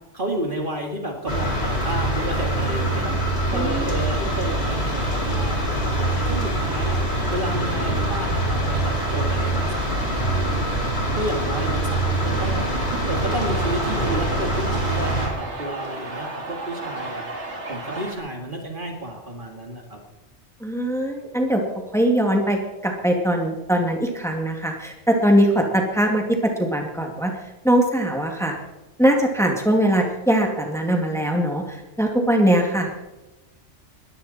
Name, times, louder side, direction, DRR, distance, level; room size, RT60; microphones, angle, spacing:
voice 1, 0.1-7.0 7.3-10.8 11.1-12.7 13.1-17.3 17.7-20.0, right 1 dB, 45° right, 2 dB, 2.5 m, -31 dB
sound 1, 1.3-15.3, right 1 dB, 60° left, 4.5 m, -24 dB
voice 2, 3.5-3.8 20.6-21.6 21.9-27.3 27.6-28.6 29.0-32.9, right 1 dB, ahead, 2 dB, 2.1 m, -21 dB
sound 2, 12.2-18.2, right 2 dB, 75° right, 2.6 m, -33 dB
20.5 x 14.5 x 4.3 m, 1.0 s
omnidirectional pair, 1.2 m